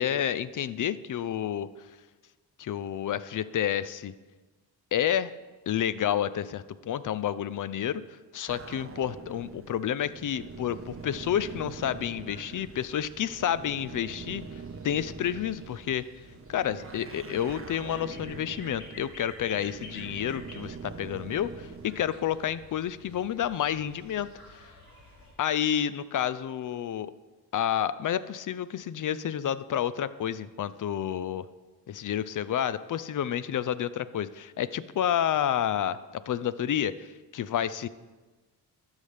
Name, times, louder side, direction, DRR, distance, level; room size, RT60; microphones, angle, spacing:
voice 1, 0.0-1.7 2.6-4.1 4.9-5.3 5.7-8.0 8.3-14.4 14.8-16.0 16.5-24.3 25.4-27.1 27.5-31.5 31.9-36.0 36.3-37.1 37.3-37.9, left 10 dB, 50° left, 15 dB, 0.4 m, -30 dB
sound 1, 8.5-22.1, right 5 dB, 35° right, 0.6 m, -44 dB
sound 2, 10.5-25.3, left 1 dB, 85° left, 2.7 m, -52 dB
12.0 x 5.6 x 3.4 m, 1.2 s
cardioid pair, 55°, 40 cm